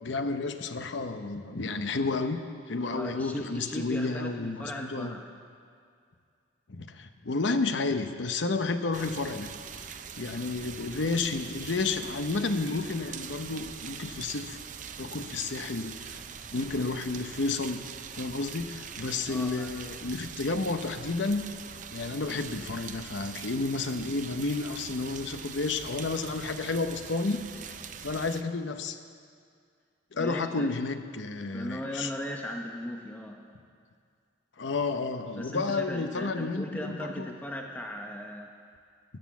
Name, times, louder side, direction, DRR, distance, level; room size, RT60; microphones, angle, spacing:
voice 1, 0.0-5.1 6.7-9.5 9.9-14.6 15.0-16.2 16.5-17.8 18.1-21.4 21.9-27.7 28.0-29.0 30.1-32.1 34.6-37.3, left 3 dB, 75° left, 8 dB, 0.8 m, -31 dB
voice 2, 2.9-5.2 19.3-19.7 30.2-30.7 31.5-33.4 35.4-38.5, equal, 10° left, 1 dB, 0.7 m, -37 dB
sound 1, 8.9-28.4, right 7 dB, 40° right, 0.5 m, -43 dB
13.5 x 9.3 x 7.1 m, 2.2 s
head